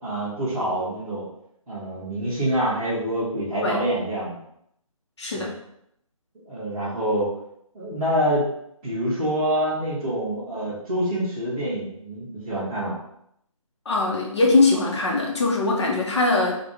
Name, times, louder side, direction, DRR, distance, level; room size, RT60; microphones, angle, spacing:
voice 1, 0.0-1.2 1.7-4.4 5.3-5.5 6.5-7.3 7.7-8.5 8.8-13.0, right 1 dB, 5° right, -13 dB, 0.4 m, -26 dB
voice 2, 5.2-5.5 13.9-16.6, left 3 dB, 50° left, -1 dB, 1.0 m, -21 dB
3.5 x 2.5 x 3.5 m, 0.74 s
figure-of-eight pair, 160°, 18 cm